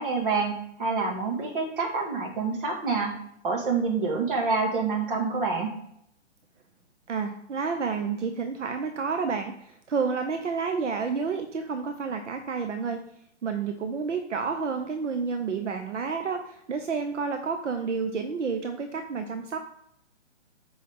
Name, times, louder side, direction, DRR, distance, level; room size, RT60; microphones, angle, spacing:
voice 1, 0.0-3.2 3.4-5.7, right 4 dB, 45° right, 1 dB, 2.2 m, -27 dB
voice 2, 7.1-13.0 13.4-19.6, right 5 dB, 75° right, 6 dB, 1.1 m, -30 dB
7.9 x 5.5 x 3.7 m, 0.73 s
hypercardioid pair, 155°, 36 cm